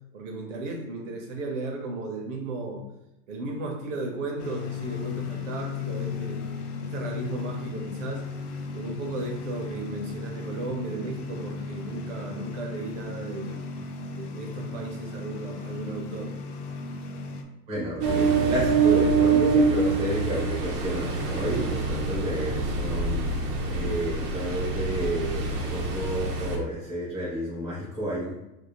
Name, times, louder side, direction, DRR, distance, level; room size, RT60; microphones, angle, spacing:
voice 1, 0.1-2.8 3.3-6.4 6.8-8.3 8.7-13.6 14.1-16.3, right 2 dB, 50° right, 1 dB, 0.7 m, -35 dB
sound 1, 4.4-17.4, left 4 dB, 70° left, 0.6 m, -36 dB
voice 2, 17.7-28.3, right 1 dB, 15° right, -8 dB, 0.4 m, -31 dB
Ocean, 18.0-26.6, right 4 dB, 80° right, 0.9 m, -25 dB
2.7 x 2.7 x 3.0 m, 0.89 s
supercardioid pair, 175°, 47 cm